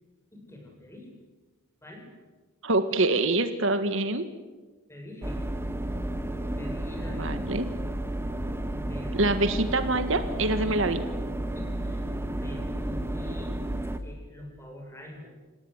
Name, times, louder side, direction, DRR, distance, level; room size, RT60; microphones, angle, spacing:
voice 1, 0.3-1.1 1.8-2.1 4.9-5.4 6.5-7.4 8.7-9.4 11.5-13.6 14.0-15.3, left 1 dB, 10° left, 2 dB, 7.0 m, -44 dB
voice 2, 2.6-4.3 7.2-7.7 9.1-11.0, right 2 dB, 65° right, 10 dB, 1.7 m, -25 dB
sound 1, 5.2-14.0, right 1 dB, 10° right, 1.4 m, -32 dB
28.0 x 18.0 x 9.7 m, 1.3 s
head